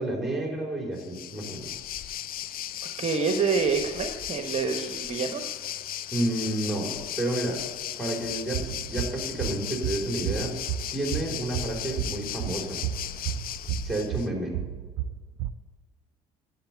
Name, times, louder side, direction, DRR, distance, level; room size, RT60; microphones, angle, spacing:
voice 1, 0.0-1.7 6.1-7.6 8.0-10.6 10.9-12.8 13.8-14.6, right 1 dB, ahead, 0 dB, 3.6 m, -30 dB
Waves surf, 1.0-14.3, left 11 dB, 45° left, 0.5 m, -36 dB
voice 2, 3.0-5.4, right 5 dB, 30° right, 5 dB, 1.1 m, -27 dB
sound 1, 8.2-15.5, right 10 dB, 55° right, 0.5 m, -33 dB
10.0 x 8.2 x 8.3 m, 1.4 s
hypercardioid pair, 60°, 20 cm